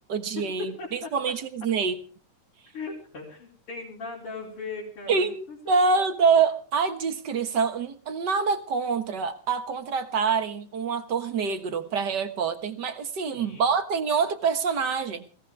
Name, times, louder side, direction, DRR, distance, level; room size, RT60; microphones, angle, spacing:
voice 1, 0.1-2.0 5.1-15.3, right 5 dB, 45° right, 1.5 m, -26 dB
voice 2, 0.8-1.1 2.7-5.9 13.2-13.7, left 3 dB, 45° left, 5.4 m, -39 dB
21.5 x 17.5 x 3.5 m
omnidirectional pair, 3.4 m